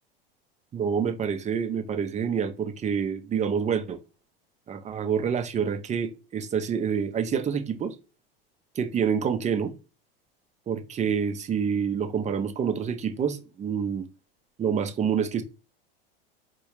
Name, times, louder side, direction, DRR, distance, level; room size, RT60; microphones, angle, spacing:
voice 1, 0.7-4.0 4.7-7.9 8.8-9.7 10.7-14.0 14.6-15.4, right 7 dB, 25° right, 0.7 m, -27 dB
4.5 x 2.2 x 3.0 m
hypercardioid pair, 85°, 30 cm